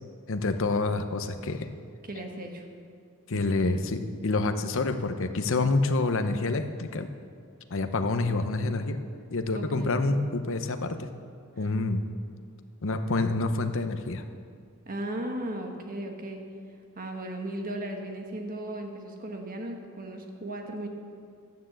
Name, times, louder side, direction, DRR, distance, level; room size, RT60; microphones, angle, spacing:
voice 1, 0.3-1.7 3.3-7.1 7.7-9.0 9.3-11.1 11.6-12.0 12.8-14.2, left 3 dB, 60° left, 8 dB, 0.8 m, -27 dB
voice 2, 2.1-2.6 3.6-3.8 9.5-10.0 11.6-11.7 14.9-16.4 16.9-20.9, right 1 dB, 40° right, 3 dB, 1.4 m, -36 dB
11.5 x 9.3 x 7.5 m, 2.3 s
head